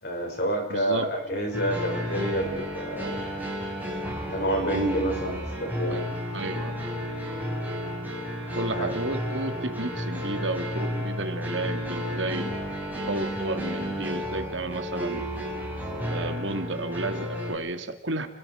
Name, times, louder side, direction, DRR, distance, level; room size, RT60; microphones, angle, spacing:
voice 1, 0.0-3.3 4.3-6.1 8.7-8.9, right 1 dB, 60° left, 2 dB, 6.3 m, -28 dB
voice 2, 0.7-1.1 5.9-6.0 6.3-6.7 8.5-12.5 13.1-15.3 16.0-18.3, right 2 dB, 70° right, 8 dB, 2.2 m, -32 dB
sound 1, 1.5-17.5, equal, 10° right, 6.3 m, -32 dB
30.0 x 21.5 x 5.0 m, 0.91 s
head